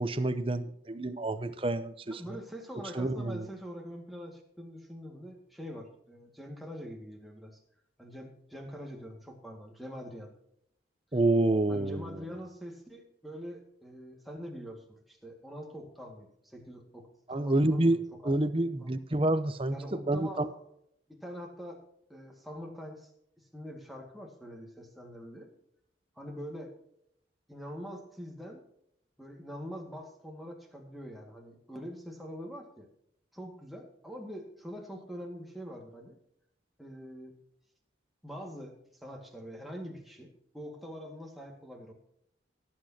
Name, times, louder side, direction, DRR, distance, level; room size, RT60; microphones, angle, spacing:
voice 1, 0.0-2.2 2.9-3.5 11.1-12.2 17.3-18.0 18.2-20.5, right 2 dB, 30° right, 11 dB, 0.7 m, -28 dB
voice 2, 2.1-7.6 8.0-10.3 11.7-19.0 19.7-20.6 21.1-21.8 22.1-23.1 23.4-25.5 26.2-26.7 27.5-28.6 29.2-32.9 33.3-36.2 36.8-37.4 38.2-41.9, equal, ahead, 1 dB, 2.0 m, -44 dB
18.0 x 8.6 x 2.9 m, 0.74 s
head